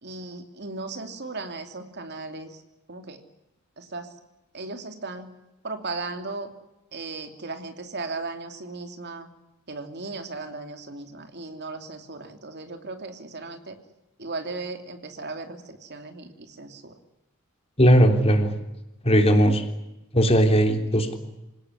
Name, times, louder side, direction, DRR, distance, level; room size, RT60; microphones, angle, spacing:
voice 1, 0.0-2.6 2.9-3.2 3.8-4.1 4.5-5.3 5.6-6.5 6.9-9.3 9.7-13.8 14.2-16.9, right 3 dB, 50° right, 6 dB, 2.9 m, -36 dB
voice 2, 17.8-18.5 19.0-19.6 20.1-21.1, equal, 30° left, 5 dB, 3.6 m, -18 dB
27.5 x 18.0 x 10.0 m, 0.96 s
head